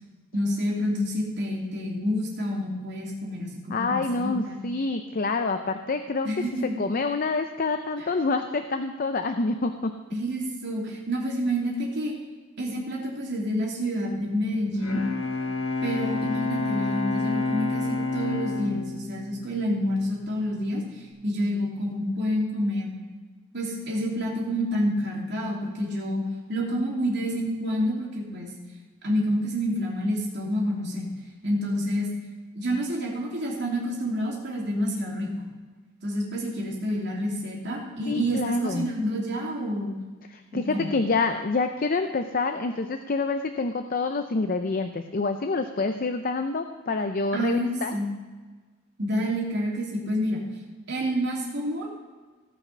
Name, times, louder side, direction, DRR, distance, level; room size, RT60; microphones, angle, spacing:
voice 1, 0.3-4.6 6.2-6.7 8.0-8.1 10.1-12.1 12.6-15.0 15.8-20.8 21.2-22.9 23.5-26.2 26.5-28.5 29.0-31.1 31.4-32.1 32.5-35.5 36.0-39.9 40.5-40.9 47.3-48.1 49.0-50.4 50.9-51.9, equal, 55° right, -3 dB, 3.0 m, -28 dB
voice 2, 3.7-6.3 6.8-9.9 38.1-38.9 40.3-47.9, left 3 dB, 45° left, 7 dB, 0.5 m, -27 dB
Bowed string instrument, 14.6-20.3, left 3 dB, 70° left, 1.3 m, -29 dB
17.5 x 5.9 x 5.6 m, 1.4 s
head